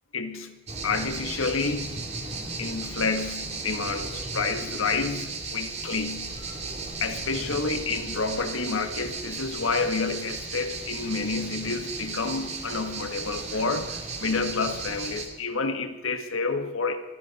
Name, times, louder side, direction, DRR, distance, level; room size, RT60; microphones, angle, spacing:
voice 1, 0.1-2.1 2.6-6.4 7.0-17.0, left 4 dB, 80° left, 8 dB, 1.5 m, -29 dB
sound 1, 0.7-15.3, right 3 dB, 30° right, 2.4 m, -35 dB
23.5 x 14.5 x 4.2 m, 1.1 s
head